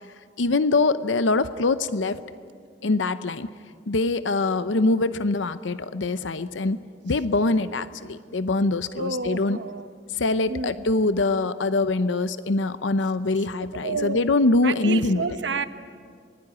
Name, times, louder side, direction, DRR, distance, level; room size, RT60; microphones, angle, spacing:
voice 1, 0.4-2.2 2.8-3.5 3.9-9.6 10.1-15.2, left 3 dB, 85° left, 13 dB, 0.7 m, -23 dB
voice 2, 9.0-9.9 10.5-10.7 13.8-14.2 14.6-15.7, right 4 dB, 70° right, 10 dB, 1.1 m, -29 dB
24.5 x 20.5 x 9.6 m, 2.2 s
head